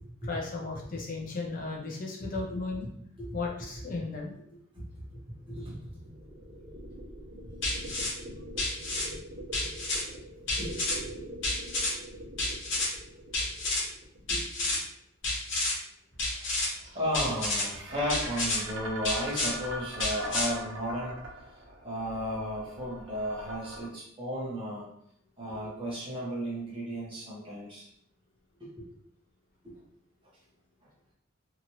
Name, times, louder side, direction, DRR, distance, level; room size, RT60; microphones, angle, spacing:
voice 1, 0.3-2.9 3.3-4.3, left 3 dB, 40° left, -1 dB, 0.5 m, -35 dB
sound 1, 4.9-14.9 16.2-23.8, right 1 dB, 60° right, 0.9 m, -43 dB
voice 2, 5.5-5.9 10.5-10.7 14.3-14.8 16.6-21.1 21.8-24.9 25.4-27.9 28.6-28.8 29.6-29.7, equal, 25° right, -7 dB, 1.1 m, -34 dB
sound 2, 7.6-8.1 8.6-9.1 9.5-10.0 10.5-11.0 11.4-11.9 12.4-12.9 13.3-13.8 14.3-14.8 15.2-15.7 16.2-16.7 17.1-17.6 18.1-18.6 19.0-19.5 20.0-20.5, left 2 dB, 60° left, 1.0 m, -30 dB
2.9 x 2.5 x 2.9 m, 0.72 s
head